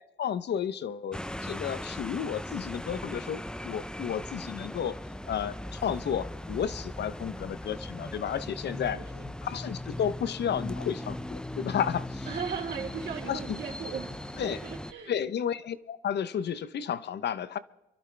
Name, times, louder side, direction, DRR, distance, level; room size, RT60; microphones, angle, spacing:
voice 1, 0.0-5.0 5.3-9.0 9.4-12.3 13.3-13.6 14.4-14.6 15.1-17.6, left 8 dB, 60° left, 0.9 m, -32 dB
sound 1, 1.1-14.9, left 1 dB, 5° left, 0.6 m, -39 dB
voice 2, 8.9-9.3 12.2-14.1 14.4-15.1, right 6 dB, 60° right, 3.2 m, -37 dB
28.5 x 12.0 x 3.4 m
cardioid pair, 90°, 20 cm